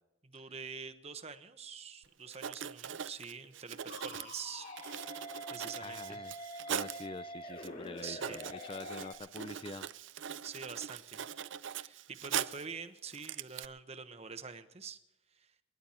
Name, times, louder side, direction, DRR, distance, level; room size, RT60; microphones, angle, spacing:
voice 1, 0.2-4.7 5.5-6.2 8.0-8.4 10.4-11.2 11.6-15.0 15.3-15.5, right 5 dB, 30° right, 10 dB, 1.0 m, -46 dB
Writing, 2.0-2.1 2.3-7.1 7.6-7.7 8.0-12.7 13.1-13.7, right 8 dB, 65° right, 0.5 m, -41 dB
sound 1, 3.9-9.1, equal, 40° left, 3.3 m, -45 dB
voice 2, 5.8-6.3 6.7-9.9, left 3 dB, 25° left, 12 dB, 0.4 m, -46 dB
28.0 x 11.0 x 4.4 m, 0.93 s
head